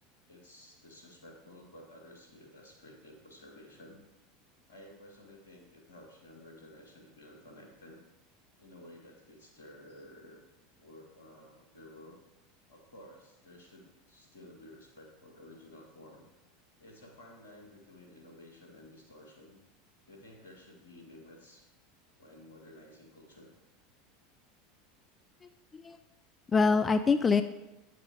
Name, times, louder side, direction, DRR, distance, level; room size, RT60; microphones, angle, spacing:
voice 1, 0.3-4.0 4.7-8.1 8.6-10.4 10.8-12.2 12.7-16.3 16.8-19.6 20.1-21.7 22.2-23.5, left 1 dB, 80° left, 1 dB, 1.7 m, -53 dB
voice 2, 25.4-26.0 26.5-27.4, left 4 dB, 25° left, 10 dB, 0.3 m, -25 dB
8.8 x 7.6 x 3.5 m, 1.0 s
figure-of-eight pair, 80°, 0 cm